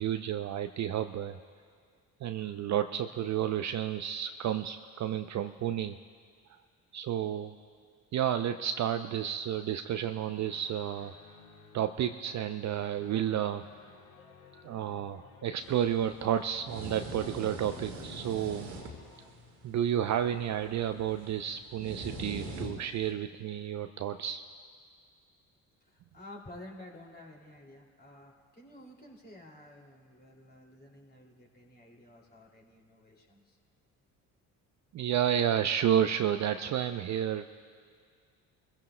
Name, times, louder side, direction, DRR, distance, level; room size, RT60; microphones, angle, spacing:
voice 1, 0.0-1.4 2.2-6.0 6.9-7.5 8.1-11.1 11.7-13.6 14.6-18.7 19.6-24.4 34.9-37.5, right 10 dB, 40° right, 9 dB, 0.5 m, -31 dB
Guitar, 10.4-18.1, left 4 dB, 40° left, 1.5 m, -58 dB
sound 1, 14.1-19.3, left 5 dB, 80° left, 1.3 m, -58 dB
sound 2, 15.6-23.1, right 1 dB, 80° right, 2.0 m, -44 dB
voice 2, 25.8-33.6, left 1 dB, 20° left, -1 dB, 2.6 m, -52 dB
23.0 x 16.0 x 2.2 m, 2.1 s
hypercardioid pair, 55°, 43 cm